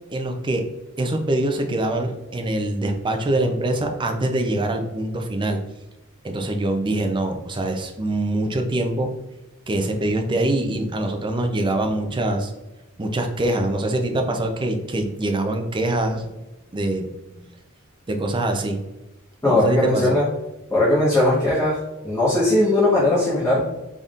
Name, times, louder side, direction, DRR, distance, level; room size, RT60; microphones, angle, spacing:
voice 1, 0.1-0.6 1.0-5.6 6.2-9.1 9.7-12.5 13.0-16.3 16.7-17.1 17.4-17.5 18.1-18.8 19.4-20.1, right 1 dB, 25° right, 4 dB, 0.5 m, -24 dB
voice 2, 19.4-20.3 20.7-21.8 22.0-23.6, left 1 dB, 15° left, -9 dB, 1.1 m, -19 dB
4.0 x 3.6 x 2.4 m, 1.0 s
head